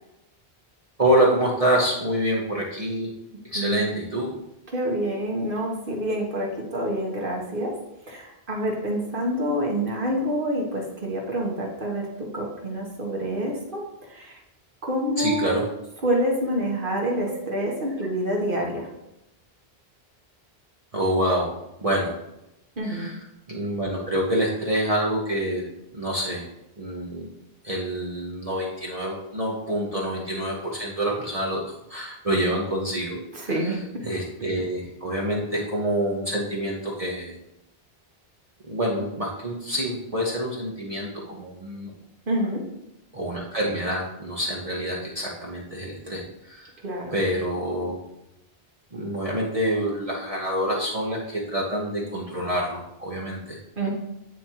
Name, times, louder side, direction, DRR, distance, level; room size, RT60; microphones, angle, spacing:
voice 1, 1.0-3.1 3.5-4.3 15.2-15.6 17.1-17.4 20.9-21.5 21.8-22.1 22.8-23.2 23.5-25.6 25.9-26.4 26.8-27.3 27.6-31.6 31.9-33.2 33.4-33.8 34.0-37.3 38.7-41.9 43.1-46.7 47.1-48.0 48.9-53.6, right 1 dB, 40° right, -4 dB, 1.0 m, -26 dB
voice 2, 3.5-4.0 4.7-7.8 8.1-14.4 14.8-15.5 16.0-18.9 22.8-23.1 33.3-34.1 42.3-42.6 46.8-47.2 53.8-53.9, right 1 dB, 55° right, -1 dB, 1.3 m, -27 dB
9.3 x 4.2 x 2.9 m, 0.88 s
omnidirectional pair, 1.0 m